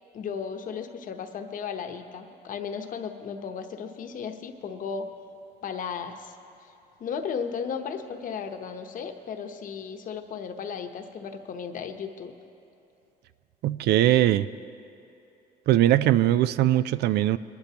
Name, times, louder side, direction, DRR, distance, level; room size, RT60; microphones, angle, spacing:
voice 1, 0.1-5.1 5.6-6.3 6.6-6.7 7.0-12.3, left 6 dB, 50° left, 6 dB, 0.9 m, -35 dB
voice 2, 13.6-14.5 15.7-17.4, right 13 dB, 75° right, 16 dB, 0.4 m, -21 dB
22.5 x 11.5 x 2.9 m, 2.8 s
cardioid pair, 120°, 17 cm